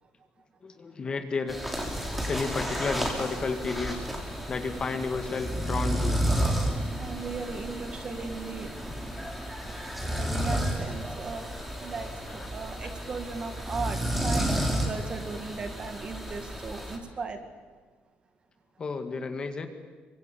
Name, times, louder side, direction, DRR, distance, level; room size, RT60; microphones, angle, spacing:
voice 1, 0.6-1.6 2.3-4.1 4.5-6.2 12.3-12.5 12.8-12.9 18.8-19.7, left 4 dB, 25° left, 7 dB, 1.9 m, -32 dB
sound 1, 1.5-17.0, equal, 5° right, 3.5 m, -32 dB
voice 2, 7.0-8.7 10.2-11.5 11.8-17.5, right 4 dB, 30° right, 7 dB, 2.2 m, -37 dB
27.0 x 24.0 x 8.7 m, 1.5 s
cardioid pair, 180°, 3 cm